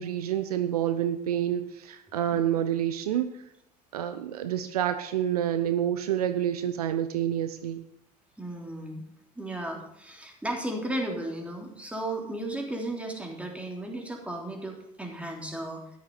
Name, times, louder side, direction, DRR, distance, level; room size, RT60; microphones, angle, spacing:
voice 1, 0.0-3.3 3.9-7.8, right 10 dB, 70° right, 10 dB, 0.7 m, -28 dB
voice 2, 8.4-9.0 9.4-15.8, right 1 dB, 5° right, 0 dB, 3.5 m, -34 dB
13.5 x 11.0 x 4.1 m, 0.79 s
figure-of-eight pair, 65°, 20 cm